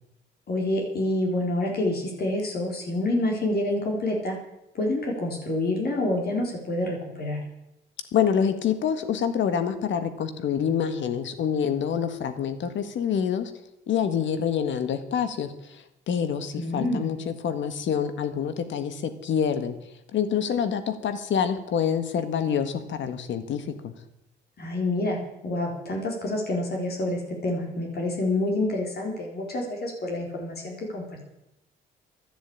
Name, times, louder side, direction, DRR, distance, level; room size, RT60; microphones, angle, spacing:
voice 1, 0.5-4.4 4.7-7.4 16.6-17.0 24.6-31.3, left 1 dB, 55° left, -1 dB, 4.2 m, -27 dB
voice 2, 8.1-13.5 13.9-19.8 20.1-23.9, left 8 dB, 70° left, 10 dB, 1.8 m, -26 dB
12.0 x 9.8 x 8.8 m, 0.87 s
cardioid pair, 90°, 20 cm